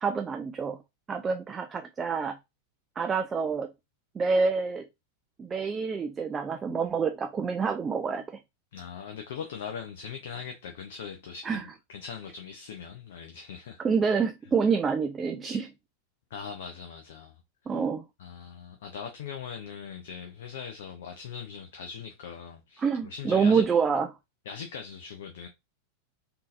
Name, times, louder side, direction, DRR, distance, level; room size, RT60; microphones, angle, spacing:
voice 1, 0.0-0.8 1.1-2.4 3.0-3.7 4.1-4.8 5.4-8.4 11.4-11.6 13.8-15.7 17.7-18.0 22.8-24.1, right 5 dB, 20° right, 0.3 m, -27 dB
voice 2, 8.7-13.8 16.3-17.8 18.2-23.7 24.5-25.5, left 7 dB, 55° left, 0.5 m, -41 dB
3.7 x 2.8 x 2.5 m
figure-of-eight pair, 90°, 0 cm